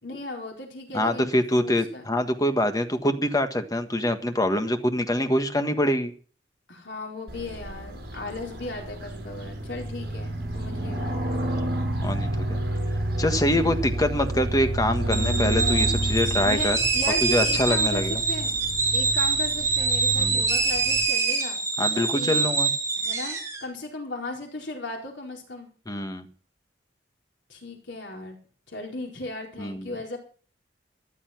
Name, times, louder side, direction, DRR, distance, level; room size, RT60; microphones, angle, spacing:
voice 1, 0.0-2.0 6.7-11.2 16.4-18.7 18.9-21.6 21.9-22.4 23.0-25.7 27.5-28.4 28.7-30.2, left 2 dB, 75° left, 1 dB, 4.5 m, -36 dB
voice 2, 0.9-6.1 10.8-11.0 12.0-12.6 13.2-16.8 17.2-18.2 20.1-20.4 21.8-22.7 25.9-26.3 29.6-29.9, left 1 dB, 20° left, 7 dB, 1.5 m, -25 dB
sound 1, 7.3-21.0, right 1 dB, 60° right, 6.3 m, -30 dB
sound 2, 15.1-23.6, right 4 dB, 15° right, 3.8 m, -25 dB
14.0 x 11.5 x 6.0 m, 0.42 s
head